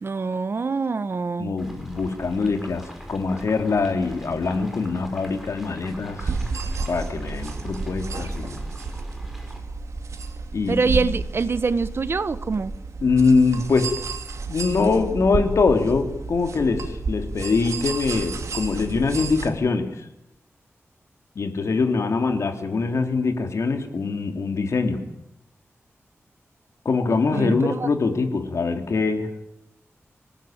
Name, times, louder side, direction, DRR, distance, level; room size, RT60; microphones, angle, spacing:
voice 1, 0.0-1.5 10.7-12.7 27.1-27.9, right 4 dB, 55° right, 14 dB, 1.2 m, -25 dB
voice 2, 1.4-6.4 6.9-8.6 10.5-11.0 13.0-13.9 14.5-20.1 21.3-25.0 26.8-29.3, left 4 dB, 75° left, 6 dB, 3.3 m, -23 dB
sound 1, 1.6-9.6, equal, 5° right, 6.2 m, -42 dB
sound 2, 6.2-19.5, right 4 dB, 90° right, 2.7 m, -31 dB
26.0 x 19.5 x 9.0 m, 0.82 s
wide cardioid pair, 120°, 5 cm